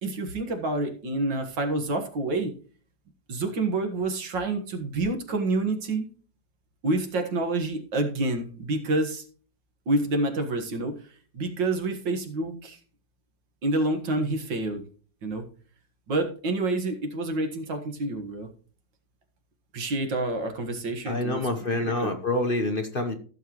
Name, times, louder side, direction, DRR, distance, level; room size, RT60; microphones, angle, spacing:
voice 1, 0.0-2.5 3.3-6.1 6.8-9.2 9.9-10.9 11.3-12.8 13.6-14.8 15.2-15.4 16.1-18.5 19.7-21.4 21.7-22.1, right 2 dB, 85° right, 6 dB, 2.2 m, -28 dB
voice 2, 21.1-23.1, left 2 dB, 35° left, 5 dB, 1.0 m, -27 dB
15.5 x 6.9 x 3.0 m, 0.42 s
omnidirectional pair, 1.9 m